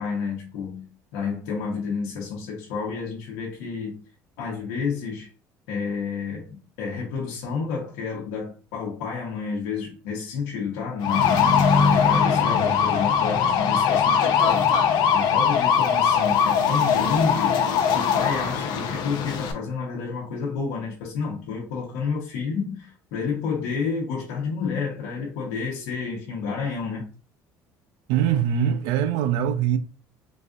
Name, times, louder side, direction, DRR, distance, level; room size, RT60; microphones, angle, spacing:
voice 1, 0.0-4.0 4.4-5.3 5.7-14.7 15.1-27.1, left 5 dB, 90° left, 1.0 m, -30 dB
sound 1, 11.0-19.5, left 7 dB, 65° left, 0.6 m, -21 dB
voice 2, 28.1-29.8, right 9 dB, 85° right, 0.4 m, -22 dB
4.0 x 2.5 x 2.4 m
cardioid pair, 110°, 8 cm